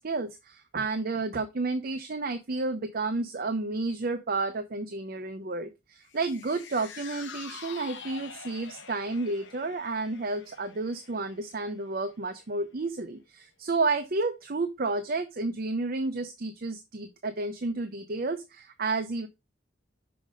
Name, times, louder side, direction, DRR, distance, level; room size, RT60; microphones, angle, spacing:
voice 1, 0.0-19.3, right 3 dB, 50° right, 8 dB, 0.7 m, -31 dB
sound 1, 6.1-12.5 12.9-13.0, left 6 dB, 75° left, 1.0 m, -46 dB
5.9 x 5.1 x 5.0 m, 0.24 s
head